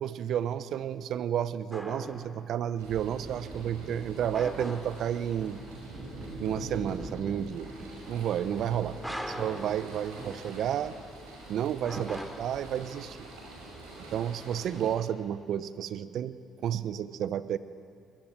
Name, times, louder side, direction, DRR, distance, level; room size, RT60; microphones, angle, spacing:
voice 1, 0.0-5.6 6.4-7.7 8.1-9.0 9.4-10.9 11.5-13.2 14.1-17.6, right 10 dB, 65° right, 15 dB, 0.8 m, -31 dB
sound 1, 1.7-2.8 4.3-5.4 9.0-10.6 11.8-13.1, equal, 5° right, 3.2 m, -40 dB
sound 2, 2.8-15.0, right 1 dB, 85° right, 6.1 m, -44 dB
sound 3, 4.6-10.8, right 2 dB, 40° right, 7.1 m, -49 dB
21.0 x 19.5 x 9.1 m, 2.3 s
hypercardioid pair, 50°, 0 cm